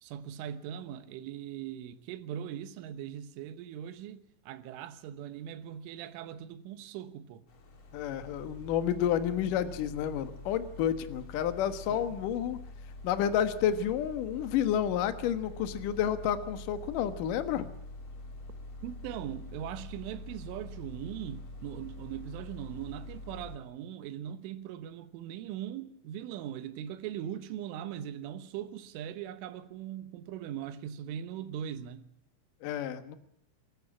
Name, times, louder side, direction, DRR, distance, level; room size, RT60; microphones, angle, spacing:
voice 1, 0.0-7.4 11.9-12.2 18.8-32.1, right 10 dB, 85° right, 3.7 m, -40 dB
sound 1, 7.5-23.6, left 2 dB, 35° left, 2.4 m, -46 dB
voice 2, 7.9-12.6 13.0-17.7 32.6-33.2, left 9 dB, 65° left, 2.3 m, -30 dB
27.0 x 14.5 x 8.6 m
omnidirectional pair, 5.5 m